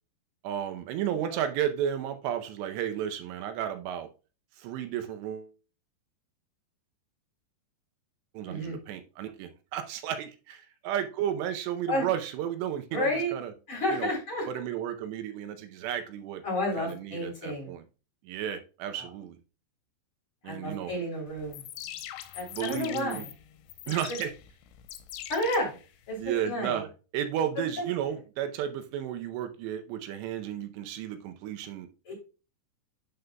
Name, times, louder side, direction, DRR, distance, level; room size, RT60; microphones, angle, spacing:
voice 1, 0.4-4.1 4.6-5.5 8.3-13.5 13.9-14.1 14.5-16.4 16.8-17.8 18.2-19.4 20.4-20.9 22.5-23.3 23.9-24.3 26.2-26.9 27.1-31.9, right 10 dB, 80° right, 2.9 m, -33 dB
voice 2, 8.4-8.8 11.9-12.1 12.9-13.3 13.7-14.5 16.4-17.7 19.0-19.1 20.4-21.6 22.3-23.3 24.1-24.2 25.3-25.7 26.1-26.8 27.8-27.9 32.1-32.2, left 1 dB, 30° left, 4.2 m, -31 dB
sound 1, 21.4-26.4, left 12 dB, 85° left, 3.0 m, -43 dB
11.5 x 5.4 x 2.2 m
omnidirectional pair, 5.0 m